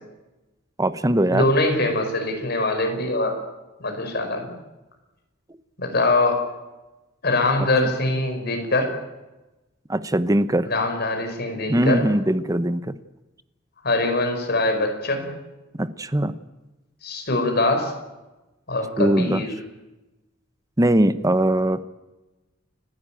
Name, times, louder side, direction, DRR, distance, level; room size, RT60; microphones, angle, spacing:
voice 1, 0.8-1.5 9.9-10.7 11.7-13.0 15.7-16.3 19.0-19.4 20.8-21.8, right 1 dB, 20° right, 13 dB, 0.9 m, -21 dB
voice 2, 1.3-3.4 3.8-4.5 5.8-6.5 7.2-8.9 10.7-12.1 13.8-15.3 17.0-17.9 18.7-19.5, left 2 dB, 55° left, 4 dB, 5.1 m, -23 dB
29.5 x 11.5 x 9.0 m, 1.1 s
head